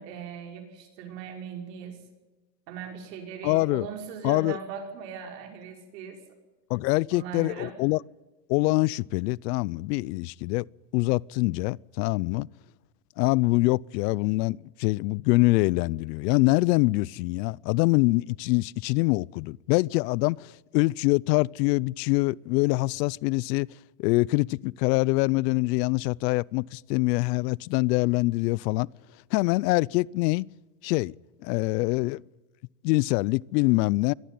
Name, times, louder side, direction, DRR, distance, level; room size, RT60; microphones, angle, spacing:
voice 1, 0.0-2.0 2.7-6.2 7.1-7.8, right 7 dB, 90° right, 5.5 m, -39 dB
voice 2, 3.4-3.8 4.2-4.6 6.7-8.0 8.5-10.7 10.9-12.5 13.2-23.7 24.0-28.9 29.3-30.5 30.8-31.1 31.4-32.2 32.8-34.1, left 23 dB, 85° left, 0.6 m, -24 dB
22.5 x 14.5 x 9.4 m
supercardioid pair, 125°, 48 cm